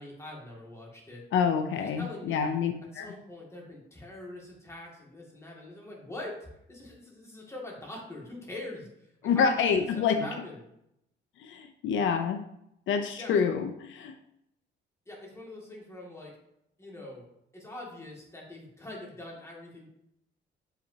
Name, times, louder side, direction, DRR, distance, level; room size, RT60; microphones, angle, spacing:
voice 1, 0.0-1.2 1.8-2.5 2.9-9.6 9.9-10.6 13.2-13.3 15.1-16.3 16.8-17.3 17.5-19.9, left 1 dB, 15° left, -2 dB, 2.2 m, -43 dB
voice 2, 1.3-3.1 9.2-10.2 11.4-12.4 12.9-14.1, left 6 dB, 75° left, 7 dB, 0.5 m, -27 dB
7.2 x 5.7 x 2.8 m, 0.79 s
cardioid pair, 90°, 20 cm